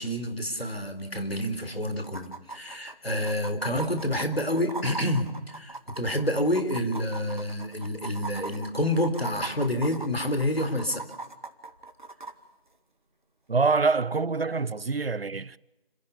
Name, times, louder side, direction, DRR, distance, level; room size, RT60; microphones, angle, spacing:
voice 1, 0.0-11.0, left 1 dB, 85° left, 4.2 m, -28 dB
sound 1, 1.0-1.1 1.3-1.4 2.0-12.3 14.0-14.1, right 3 dB, 55° right, 2.1 m, -40 dB
voice 2, 13.5-15.6, right 4 dB, 75° right, 0.7 m, -25 dB
30.0 x 11.5 x 8.5 m
figure-of-eight pair, 165°, 30 cm